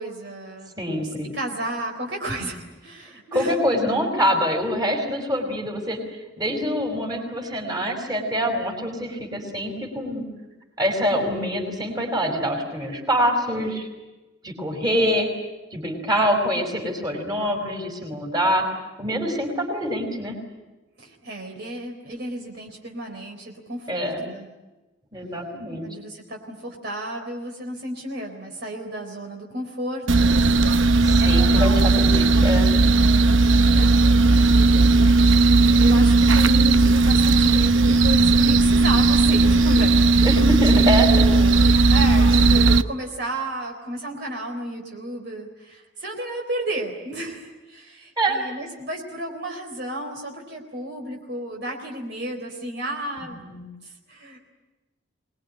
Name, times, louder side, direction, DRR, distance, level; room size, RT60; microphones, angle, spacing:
voice 1, 0.0-0.7 1.0-3.5 21.0-24.5 25.8-30.2 31.2-31.8 33.0-34.7 35.8-40.3 40.7-53.4 53.8-54.4, right 1 dB, 55° right, 2 dB, 4.1 m, -32 dB
voice 2, 0.8-1.3 3.3-6.0 6.4-10.2 10.8-13.9 14.4-15.3 15.7-18.7 19.0-20.4 23.9-24.2 25.1-25.9 31.0-32.7 40.2-41.2 48.2-48.4 53.2-53.7, equal, 20° right, 3 dB, 5.2 m, -25 dB
sound 1, 30.1-42.8, right 3 dB, 80° right, 0.9 m, -16 dB
24.5 x 21.5 x 10.0 m, 1.1 s
head